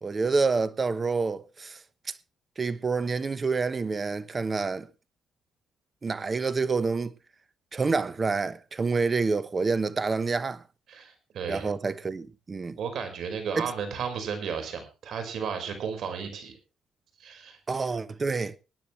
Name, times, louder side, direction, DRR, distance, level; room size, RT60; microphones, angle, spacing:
voice 1, 0.0-1.8 2.1-2.2 2.6-4.9 6.0-7.1 7.7-10.6 11.5-12.8 13.6-13.7 17.7-18.6, right 4 dB, 35° right, 1.1 m, -28 dB
voice 2, 10.9-11.7 12.8-16.6 17.2-17.6, right 6 dB, 70° right, 5.0 m, -34 dB
24.5 x 9.5 x 3.2 m
cardioid pair, 90°, 0 cm